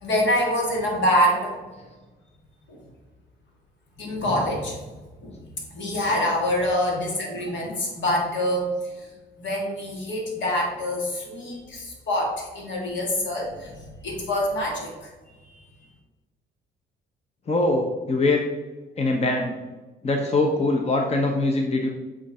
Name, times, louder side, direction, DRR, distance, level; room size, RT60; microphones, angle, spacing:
voice 1, 0.0-1.6 2.7-2.8 4.0-4.8 5.2-5.4 5.7-9.1 9.4-15.1 15.4-15.6, equal, 70° left, -1 dB, 2.2 m, -25 dB
voice 2, 17.5-18.4 19.0-19.6 20.0-21.9, left 2 dB, 30° left, 2 dB, 0.8 m, -22 dB
7.8 x 3.8 x 4.2 m, 1.2 s
cardioid pair, 90°, 20 cm